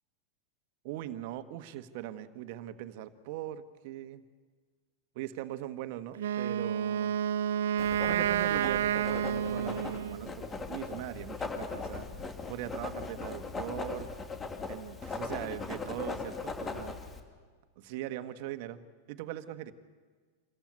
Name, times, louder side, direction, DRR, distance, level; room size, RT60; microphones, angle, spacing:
voice 1, 0.8-4.2 5.1-7.2 8.1-14.1 14.7-17.0 17.8-19.7, right 13 dB, 60° right, 11 dB, 1.4 m, -40 dB
Wind instrument woodwind instrument, 6.2-10.3, right 9 dB, 80° right, 0.6 m, -30 dB
Writing, 7.8-17.2, left 4 dB, 20° left, 2.6 m, -39 dB
26.0 x 14.5 x 9.5 m, 1.5 s
hypercardioid pair, 115°, 0 cm